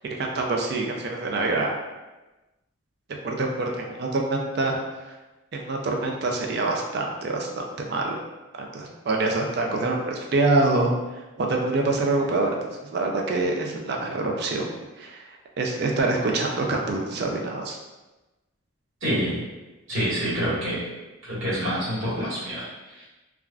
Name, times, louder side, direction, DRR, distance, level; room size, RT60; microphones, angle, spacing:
voice 1, 0.2-1.7 3.2-4.8 5.5-7.6 7.9-8.2 8.6-10.9 11.4-12.6 12.9-14.7 15.0-15.2 15.6-17.8, right 2 dB, 50° right, 1 dB, 0.3 m, -25 dB
voice 2, 19.0-19.5 19.9-20.9 21.2-23.0, equal, 70° right, -9 dB, 1.5 m, -27 dB
3.4 x 2.4 x 2.2 m, 1.1 s
head